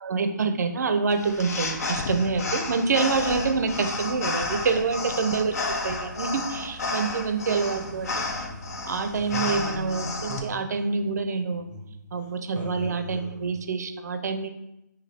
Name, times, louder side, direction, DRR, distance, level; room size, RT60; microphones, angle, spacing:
voice 1, 0.0-8.1 8.9-11.7 12.1-14.5, right 4 dB, 60° right, 8 dB, 0.5 m, -26 dB
sound 1, 1.1-10.4, left 3 dB, 55° left, 0.6 m, -31 dB
sound 2, 7.4-8.8 9.2-12.3 12.5-13.5, right 1 dB, 10° right, 0.5 m, -40 dB
3.0 x 2.6 x 4.0 m, 0.87 s
figure-of-eight pair, 150°, 10 cm